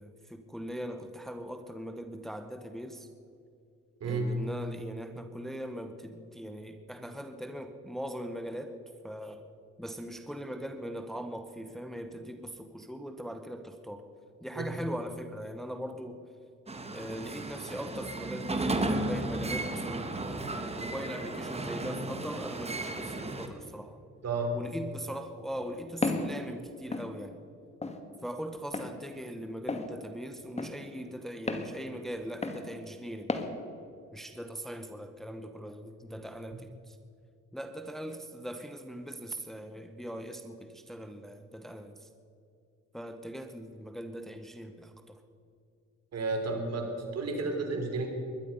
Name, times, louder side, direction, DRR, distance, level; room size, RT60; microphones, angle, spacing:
voice 1, 0.0-3.1 4.0-8.8 9.0-9.5 9.8-14.1 14.4-16.2 16.9-24.0 24.5-27.4 28.2-33.3 34.1-37.0 37.5-42.1 42.9-45.2, equal, ahead, 7 dB, 1.0 m, -40 dB
voice 2, 4.0-4.3 14.6-14.7 24.2-24.5 46.1-48.1, right 3 dB, 55° right, 3 dB, 3.6 m, -32 dB
sound 1, 16.7-23.5, right 2 dB, 20° right, 1.6 m, -34 dB
Walk footsteps, 26.0-26.3 26.9-27.1 27.8-28.0 28.7-28.9 29.7-29.9 30.6-30.7 31.5-31.7 32.4-32.6 33.3-33.5, left 3 dB, 20° left, 1.7 m, -32 dB
21.5 x 11.5 x 5.5 m, 2.5 s
cardioid pair, 90°, 30 cm